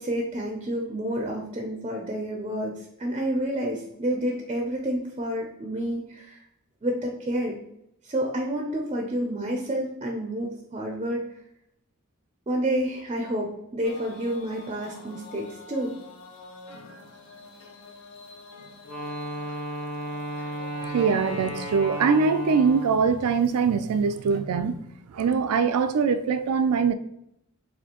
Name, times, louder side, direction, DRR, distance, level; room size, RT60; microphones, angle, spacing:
voice 1, 0.0-6.4 6.8-7.6 8.0-11.3 12.5-16.0, right 1 dB, 25° right, 0 dB, 0.4 m, -29 dB
sound 1, 13.8-24.4, left 3 dB, 65° left, 0.5 m, -47 dB
Wind instrument woodwind instrument, 18.8-23.2, right 1 dB, 90° left, 1.4 m, -34 dB
voice 2, 20.8-24.8 25.1-26.9, right 5 dB, 90° right, 11 dB, 0.4 m, -23 dB
4.2 x 2.7 x 2.9 m, 0.76 s
head